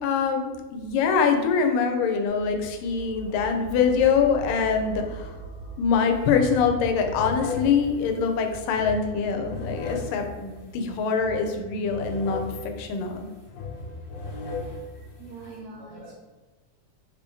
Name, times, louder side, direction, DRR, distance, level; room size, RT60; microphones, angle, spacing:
voice 1, 0.0-5.4 5.8-12.4 12.8-13.3, left 6 dB, 90° left, 4 dB, 2.2 m, -24 dB
voice 2, 1.0-1.4 3.3-3.4 6.1-6.3 8.0-8.1 15.2-16.1, right 2 dB, 80° right, -1 dB, 1.7 m, -44 dB
sound 1, 2.3-12.2, right 3 dB, 60° right, 2.1 m, -43 dB
sound 2, 5.9-6.1 6.3-15.6, left 3 dB, 65° left, 2.0 m, -37 dB
5.7 x 2.7 x 3.5 m, 1.3 s
omnidirectional pair, 3.7 m